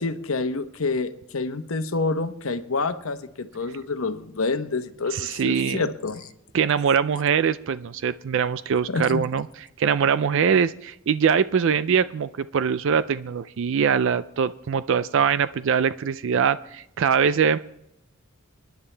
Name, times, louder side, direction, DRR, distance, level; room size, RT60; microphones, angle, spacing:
voice 1, 0.0-6.3 8.9-9.2, left 3 dB, 70° left, 10 dB, 0.9 m, -28 dB
voice 2, 5.1-5.8 6.5-9.5 9.8-17.6, right 7 dB, 60° right, 15 dB, 0.4 m, -22 dB
27.0 x 10.5 x 3.3 m, 0.84 s
head